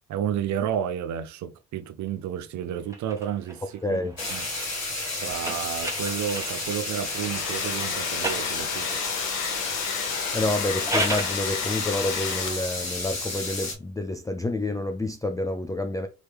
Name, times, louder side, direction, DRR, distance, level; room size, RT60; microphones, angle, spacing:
voice 1, 0.1-4.0 4.3-4.5 5.2-8.9, right 9 dB, 70° right, 0.6 m, -31 dB
sound 1, 2.9-6.9 7.8-9.1 10.6-11.4, right 1 dB, 10° right, 1.3 m, -34 dB
voice 2, 3.8-4.2 10.3-16.1, left 2 dB, 10° left, 0.5 m, -28 dB
sound 2, 4.2-13.7, left 2 dB, 55° left, 2.2 m, -32 dB
Domestic sounds home sounds, 6.8-12.9, left 8 dB, 90° left, 0.8 m, -32 dB
4.4 x 3.2 x 3.4 m
cardioid pair, 90°, 30 cm